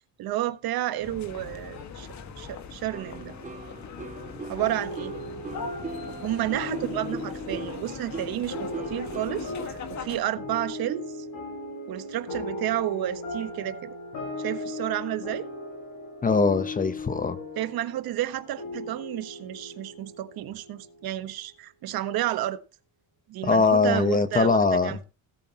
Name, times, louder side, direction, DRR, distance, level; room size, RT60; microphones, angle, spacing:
voice 1, 0.2-2.1 2.4-3.3 4.5-5.1 6.2-11.3 11.9-13.9 14.4-15.5 17.6-22.6 23.3-25.0, right 13 dB, 80° right, 1.3 m, -31 dB
Rue Rivoli Paris, 1.0-10.2, left 6 dB, 50° left, 1.8 m, -41 dB
sound 1, 2.9-9.7, right 3 dB, 20° right, 1.1 m, -40 dB
sound 2, 4.6-21.4, left 2 dB, 70° left, 7.5 m, -38 dB
voice 2, 16.2-17.4 23.4-25.0, left 4 dB, 25° left, 0.9 m, -22 dB
17.5 x 8.4 x 3.0 m
cardioid pair, 160°, 36 cm